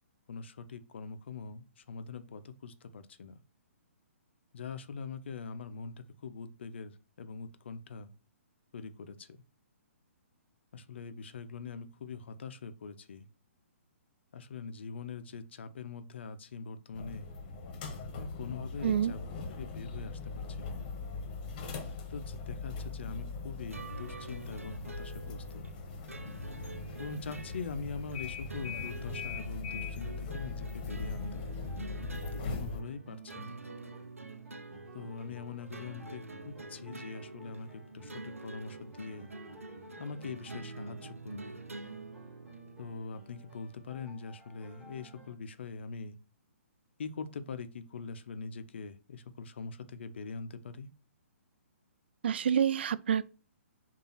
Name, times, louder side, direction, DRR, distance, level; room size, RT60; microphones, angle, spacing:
voice 1, 0.3-3.4 4.5-8.1 8.7-9.3 10.7-13.3 14.3-17.3 18.2-19.2 19.6-20.2 20.6-20.8 22.1-25.7 27.0-31.5 32.3-33.6 34.9-39.3 40.0-41.6 42.8-46.2 47.0-50.9, left 5 dB, 50° left, 0.8 m, -43 dB
sound 1, 16.9-32.8, left 4 dB, 35° left, 1.3 m, -40 dB
voice 2, 18.8-19.1 52.2-53.2, right 8 dB, 50° right, 0.5 m, -27 dB
sound 2, 23.7-42.9, right 2 dB, 80° right, 0.8 m, -46 dB
sound 3, 31.7-45.3, right 2 dB, 10° right, 2.5 m, -53 dB
6.9 x 2.7 x 5.6 m
figure-of-eight pair, 125°, 8 cm